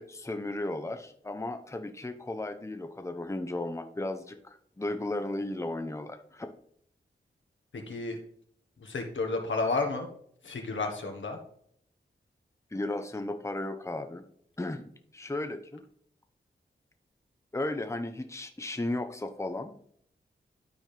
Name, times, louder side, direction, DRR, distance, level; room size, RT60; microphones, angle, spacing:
voice 1, 0.0-6.5 12.7-14.2 14.6-15.8 17.5-19.9, left 2 dB, 15° left, 7 dB, 0.8 m, -35 dB
voice 2, 7.7-8.2 8.8-10.1 10.4-11.4, left 3 dB, 75° left, 3 dB, 1.5 m, -31 dB
12.0 x 4.3 x 3.4 m, 0.65 s
cardioid pair, 45°, 20 cm